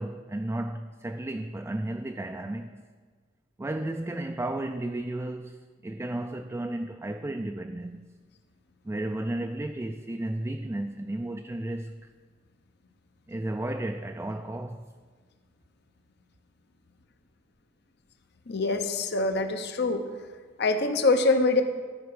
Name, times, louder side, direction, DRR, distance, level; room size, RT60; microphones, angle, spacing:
voice 1, 0.0-2.8 3.6-8.1 8.8-12.1 13.3-14.9, right 1 dB, 15° right, 0.3 m, -33 dB
voice 2, 18.5-20.0 20.6-21.6, left 3 dB, 60° left, 0.7 m, -24 dB
13.5 x 4.9 x 6.2 m
head